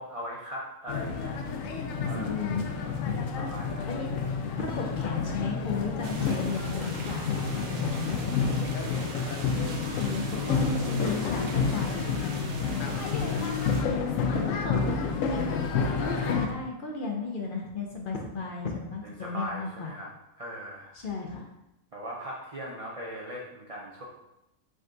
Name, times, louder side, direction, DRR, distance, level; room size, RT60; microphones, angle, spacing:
voice 1, 0.0-1.3 2.0-2.7 3.3-4.0 9.1-9.5 13.0-13.7 19.0-20.1 20.4-20.9 21.9-24.0, equal, 45° right, -4 dB, 0.4 m, -40 dB
sound 1, 0.9-16.5, left 5 dB, 75° left, 0.9 m, -29 dB
voice 2, 2.1-2.7 3.9-4.1 4.6-8.7 10.0-12.1 13.8-15.6 16.0-19.9 20.9-21.5, left 4 dB, 60° left, 1 dB, 0.6 m, -35 dB
sound 2, 6.0-13.8, right 4 dB, 65° right, 0.8 m, -42 dB
5.0 x 2.4 x 3.8 m, 0.88 s
omnidirectional pair, 1.4 m